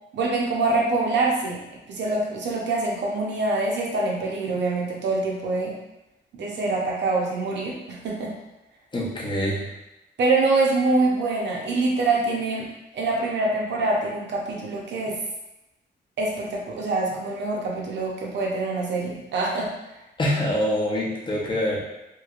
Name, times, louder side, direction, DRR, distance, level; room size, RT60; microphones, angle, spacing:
voice 1, 0.1-1.6 1.9-5.8 6.3-8.3 10.2-15.2 16.2-19.7, right 3 dB, 75° right, -1 dB, 0.7 m, -25 dB
voice 2, 8.9-9.6 20.2-21.8, equal, 25° left, -3 dB, 0.6 m, -25 dB
3.1 x 2.8 x 2.4 m, 0.94 s
wide cardioid pair, 165°, 19 cm